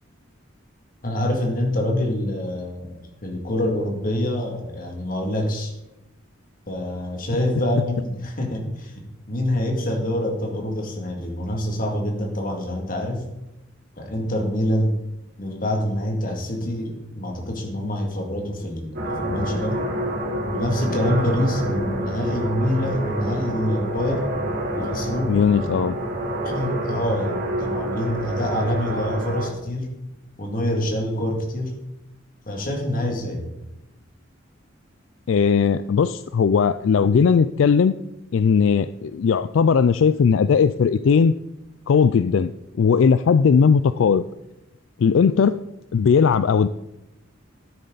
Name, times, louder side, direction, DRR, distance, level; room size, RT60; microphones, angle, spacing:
voice 1, 1.0-3.0 3.2-5.7 6.7-13.2 14.0-15.0 15.4-19.8 20.5-24.3 24.7-25.3 26.4-29.9 30.4-31.7 32.5-33.4, left 1 dB, 45° left, 1 dB, 2.4 m, -26 dB
sound 1, 18.9-29.5, right 1 dB, 50° right, 2.7 m, -27 dB
voice 2, 25.3-26.0 35.3-37.9 38.3-41.3 41.9-42.5 42.8-44.2 45.0-45.6 45.9-46.7, left 6 dB, 80° left, 13 dB, 0.4 m, -18 dB
12.5 x 10.0 x 4.0 m, 0.92 s
head